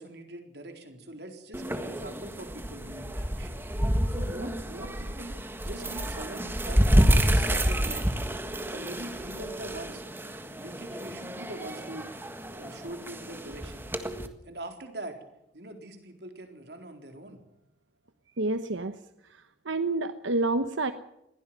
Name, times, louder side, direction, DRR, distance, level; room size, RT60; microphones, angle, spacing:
voice 1, 0.0-3.6 4.1-5.4 5.6-8.2 8.7-10.0 10.5-12.1 12.5-13.9 14.5-15.2 15.5-17.4, right 1 dB, 60° right, 5 dB, 4.0 m, -42 dB
sound 1, 1.5-14.3, equal, 10° right, 1.6 m, -29 dB
voice 2, 18.4-18.9 19.7-20.9, right 2 dB, 90° right, 10 dB, 1.1 m, -28 dB
22.0 x 16.0 x 7.6 m, 0.87 s
head